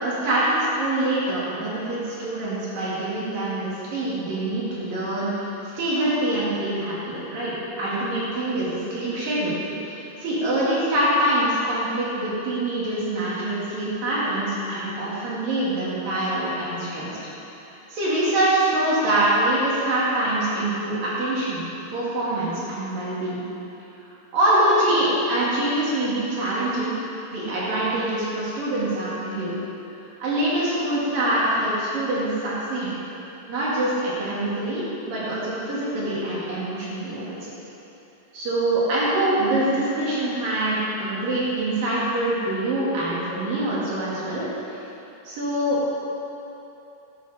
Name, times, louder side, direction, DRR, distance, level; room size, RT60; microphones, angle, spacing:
voice 1, 0.0-5.5 5.7-17.2 17.6-21.6 21.9-23.4 24.3-26.9 27.3-29.5 30.2-32.9 33.5-37.5 38.3-44.8 45.2-45.8, right 1 dB, 50° right, -8 dB, 3.4 m, -24 dB
12.5 x 11.5 x 3.6 m, 2.9 s
omnidirectional pair, 5.7 m